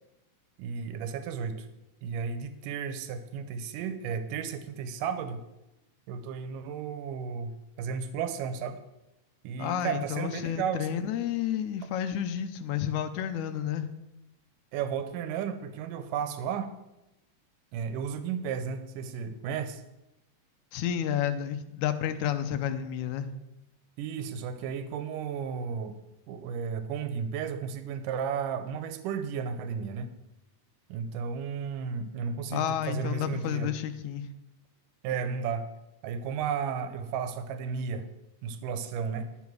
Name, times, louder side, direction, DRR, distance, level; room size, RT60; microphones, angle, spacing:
voice 1, 0.6-1.7 2.0-5.4 6.1-8.8 9.4-11.0 14.7-16.7 17.7-19.8 24.0-26.0 26.3-30.1 30.9-33.7 35.0-35.7 36.0-38.1 38.4-39.3, right 6 dB, 85° right, 10 dB, 2.4 m, -33 dB
voice 2, 9.6-13.9 20.7-23.3 32.5-34.3, left 10 dB, 80° left, 10 dB, 2.0 m, -31 dB
12.0 x 7.2 x 6.2 m, 0.93 s
omnidirectional pair, 3.8 m